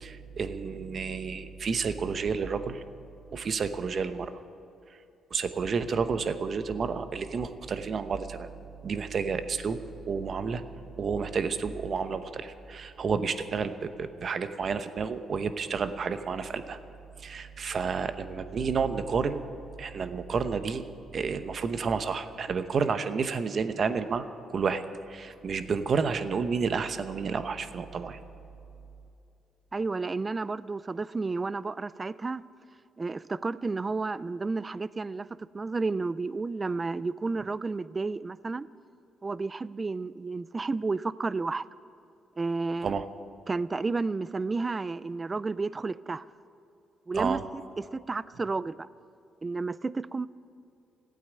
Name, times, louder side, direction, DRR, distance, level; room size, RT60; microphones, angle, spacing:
voice 1, 0.0-2.8 3.3-4.3 5.3-8.5 8.8-9.8 10.1-10.6 11.0-16.8 17.2-19.4 19.8-20.8 21.1-24.8 25.1-28.2 42.8-43.1 47.1-47.4, right 5 dB, 50° right, 10 dB, 0.9 m, -30 dB
voice 2, 29.7-32.4 33.0-38.7 39.2-41.6 42.4-42.9 43.5-46.2 47.1-47.4 47.8-48.9 49.4-50.3, right 3 dB, 25° right, 18 dB, 0.4 m, -31 dB
15.5 x 8.6 x 9.7 m, 2.7 s
cardioid pair, 90°, 0 cm